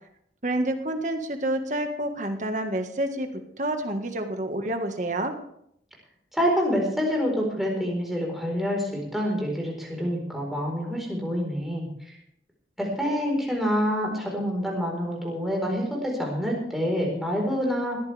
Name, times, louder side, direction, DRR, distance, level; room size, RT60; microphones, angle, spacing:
voice 1, 0.4-3.3 3.6-5.3, right 1 dB, 45° right, 5 dB, 1.7 m, -28 dB
voice 2, 6.3-11.9 12.8-18.0, equal, ahead, -1 dB, 4.4 m, -27 dB
20.0 x 14.5 x 3.5 m, 0.73 s
head